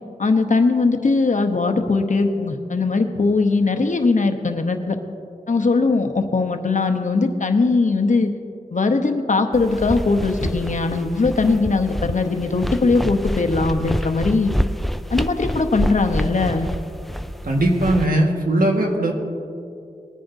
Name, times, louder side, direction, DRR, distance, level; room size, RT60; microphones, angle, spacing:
voice 1, 0.2-5.0 5.5-8.3 8.7-14.5 15.1-16.7, left 3 dB, 60° left, 5 dB, 0.9 m, -20 dB
sound 1, 9.5-18.1, equal, ahead, 0.3 m, -27 dB
voice 2, 17.4-19.1, right 1 dB, 75° right, 1 dB, 1.6 m, -19 dB
20.0 x 10.0 x 2.7 m, 2.5 s
wide cardioid pair, 65°, 14 cm